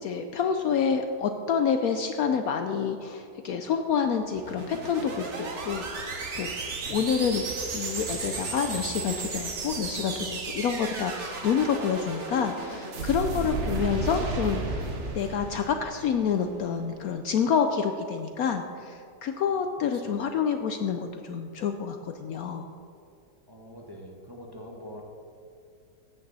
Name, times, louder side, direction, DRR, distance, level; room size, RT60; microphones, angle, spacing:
voice 1, 0.0-7.4 7.7-22.7, left 6 dB, 70° left, 6 dB, 0.9 m, -28 dB
sound 1, 4.2-16.6, right 3 dB, 45° right, 1.3 m, -34 dB
voice 2, 6.8-7.2 13.3-13.5 20.0-20.2 23.5-25.0, equal, 15° right, -1 dB, 0.9 m, -44 dB
14.5 x 9.0 x 4.1 m, 2.5 s
omnidirectional pair, 1.9 m